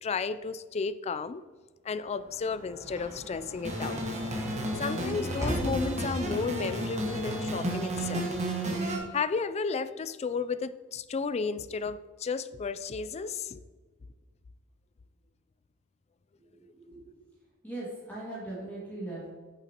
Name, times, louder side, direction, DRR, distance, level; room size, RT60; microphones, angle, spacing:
voice 1, 0.0-1.4 1.8-4.0 4.8-8.3 8.8-13.6, left 5 dB, 30° left, 14 dB, 0.3 m, -33 dB
Sliding door / Slam, 2.0-9.0, equal, 15° right, 1.7 m, -41 dB
sound 1, 3.6-9.0, right 1 dB, 30° right, 1.3 m, -32 dB
voice 2, 16.6-17.1 17.6-19.3, right 2 dB, 10° left, -7 dB, 2.1 m, -40 dB
9.2 x 6.9 x 2.9 m, 1.4 s
head